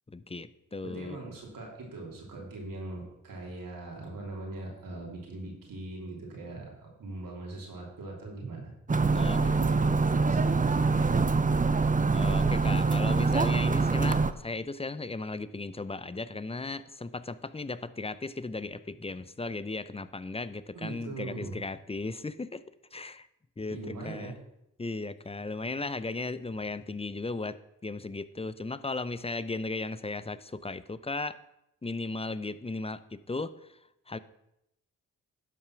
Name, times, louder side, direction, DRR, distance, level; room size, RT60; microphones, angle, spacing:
voice 1, 0.1-1.2 9.1-9.6 12.1-22.6 22.9-23.3 23.6-24.3 24.8-31.4 31.8-33.8 34.1-34.2, left 3 dB, 20° left, 15 dB, 0.6 m, -36 dB
voice 2, 0.8-8.7 9.1-11.4 20.7-21.6 23.7-24.3, right 2 dB, 85° right, -1 dB, 3.1 m, -41 dB
sound 1, 8.9-14.3, right 4 dB, 25° right, 0.7 m, -25 dB
11.0 x 5.6 x 5.9 m, 0.84 s
cardioid pair, 55°, 33 cm